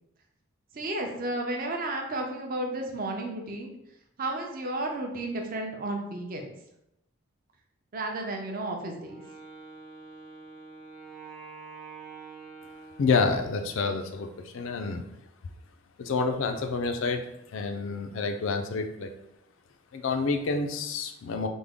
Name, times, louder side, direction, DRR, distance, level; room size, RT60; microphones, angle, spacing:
voice 1, 0.7-3.7 4.2-6.5 7.9-9.2, right 2 dB, 40° right, 2 dB, 0.5 m, -32 dB
Wind instrument woodwind instrument, 9.0-13.9, right 4 dB, 60° right, 0.9 m, -46 dB
voice 2, 13.0-15.0 16.0-19.1 19.9-21.5, left 4 dB, 60° left, 6 dB, 0.4 m, -28 dB
3.5 x 2.1 x 3.5 m, 0.82 s
head